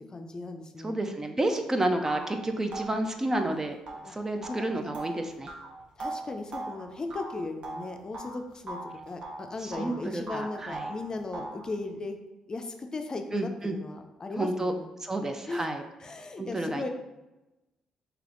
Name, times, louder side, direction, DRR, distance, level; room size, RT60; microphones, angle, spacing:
voice 1, 0.0-1.0 4.0-4.9 6.0-8.8 9.1-12.2 12.5-14.9 15.5-15.7 16.0-16.9, left 3 dB, 35° left, 5 dB, 0.5 m, -37 dB
voice 2, 0.8-3.8 4.1-5.5 9.6-10.9 13.3-13.8 14.4-14.7 15.0-15.8 16.4-16.9, right 1 dB, 25° right, 6 dB, 0.5 m, -30 dB
sound 1, 1.5-1.6 2.1-8.4 8.7-10.0 10.3-11.7, right 2 dB, 50° right, 0.8 m, -40 dB
3.3 x 2.9 x 3.8 m, 1.0 s
supercardioid pair, 55°, 2 cm